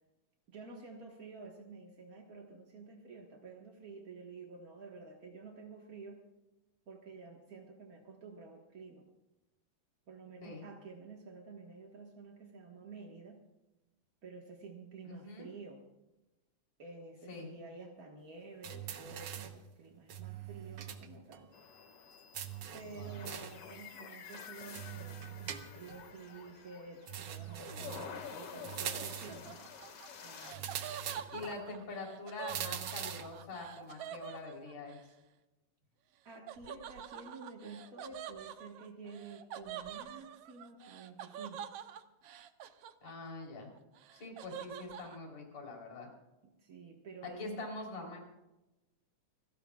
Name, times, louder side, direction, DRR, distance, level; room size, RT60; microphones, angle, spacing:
voice 1, 0.5-6.2 6.9-9.1 10.1-13.4 14.2-15.8 16.8-21.5 22.7-29.6 30.2-30.7 36.2-41.8 46.6-47.8, right 4 dB, 40° right, 0 dB, 1.3 m, -50 dB
voice 2, 15.0-15.5 17.3-17.5 22.8-23.3 31.3-35.0 43.0-43.7 44.1-46.1 47.2-48.2, left 3 dB, 55° left, 0 dB, 5.0 m, -44 dB
sound 1, 18.6-19.6 20.1-21.1 21.3-21.4 22.3-23.6 24.7-26.0 27.1-28.2 28.6-29.4 30.5-31.5 32.5-33.4, right 9 dB, 60° right, 1.6 m, -42 dB
sound 2, 21.5-30.5, left 6 dB, 70° left, 3.4 m, -50 dB
Laughter, 29.0-35.0 36.5-43.4 43.8-45.2, right 9 dB, 80° right, 1.4 m, -47 dB
29.5 x 16.5 x 2.4 m, 1.0 s
omnidirectional pair, 3.8 m